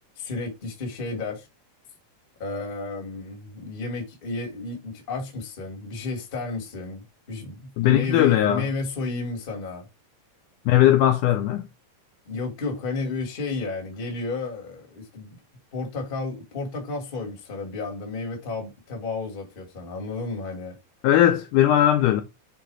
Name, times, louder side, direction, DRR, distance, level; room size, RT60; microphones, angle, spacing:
voice 1, 0.2-1.5 2.4-9.9 12.2-15.3 15.7-20.7, left 3 dB, 30° left, 1.0 m, -32 dB
voice 2, 7.8-8.6 10.7-11.7 21.0-22.2, left 12 dB, 80° left, 1.9 m, -19 dB
7.0 x 3.7 x 4.6 m
omnidirectional pair, 4.2 m